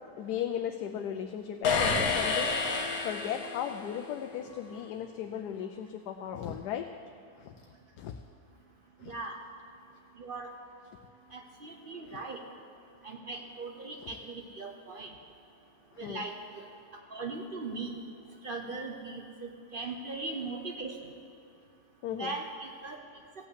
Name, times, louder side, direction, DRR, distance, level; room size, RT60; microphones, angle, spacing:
voice 1, 0.2-6.9 7.4-7.5 8.0-8.1 9.0-9.1 12.1-12.2 16.0-16.2 22.0-22.3, left 9 dB, 90° left, 6 dB, 1.1 m, -36 dB
sound 1, 1.6-3.9, left 4 dB, 70° left, 1.4 m, -29 dB
voice 2, 9.0-9.4 10.2-10.5 11.3-12.4 13.0-15.1 16.0-16.6 17.1-17.9 18.4-21.0 22.1-23.0, right 3 dB, 45° right, 3 dB, 0.8 m, -39 dB
15.5 x 5.6 x 8.2 m, 2.4 s
omnidirectional pair, 1.7 m